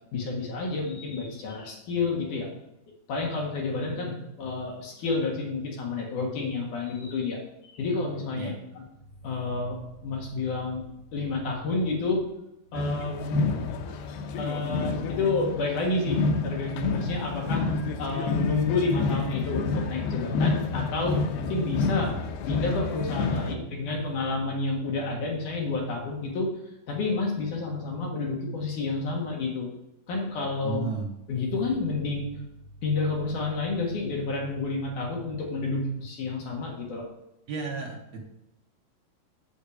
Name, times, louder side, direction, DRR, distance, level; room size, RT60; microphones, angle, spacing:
voice 1, 0.1-2.5 3.1-8.5 9.2-10.9 11.1-12.2 12.7-13.7 14.4-17.7 18.0-22.1 22.5-29.7 30.1-30.8 31.3-32.4 32.8-37.1, left 3 dB, 60° left, -1 dB, 2.7 m, -30 dB
voice 2, 8.4-8.8 23.4-23.6 30.6-31.1 37.5-38.2, right 4 dB, 70° right, 0 dB, 1.7 m, -34 dB
sound 1, 12.7-23.5, left 4 dB, 85° left, 2.8 m, -29 dB
8.5 x 7.7 x 5.0 m, 0.87 s
omnidirectional pair, 4.6 m